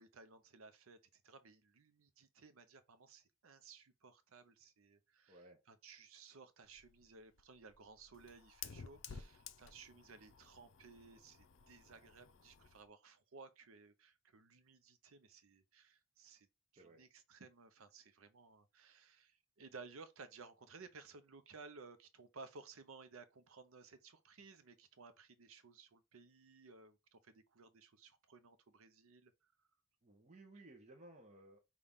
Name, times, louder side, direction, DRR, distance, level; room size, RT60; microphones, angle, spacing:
voice 1, 0.0-16.5 16.7-29.5, right 4 dB, 80° right, 0.6 m, -58 dB
voice 2, 5.3-5.6 11.8-12.1 16.8-17.0 30.0-31.6, right 2 dB, 30° right, 0.6 m, -59 dB
Fire, 6.7-12.9, left 7 dB, 60° left, 0.5 m, -55 dB
5.6 x 2.3 x 3.4 m
head